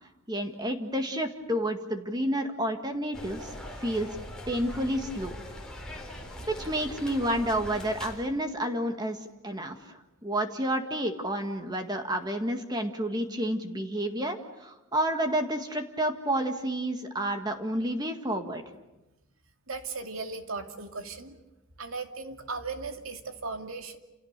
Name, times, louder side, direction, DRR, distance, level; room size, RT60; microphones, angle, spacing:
voice 1, 0.3-3.5 3.8-4.1 4.5-5.3 6.5-9.8 10.2-18.6, right 1 dB, 20° right, 5 dB, 1.8 m, -30 dB
sound 1, 3.1-8.2, left 1 dB, 5° left, 3.9 m, -41 dB
voice 2, 19.7-21.4 21.8-24.0, right 4 dB, 75° right, 5 dB, 2.5 m, -37 dB
29.0 x 29.0 x 6.8 m, 1.0 s
head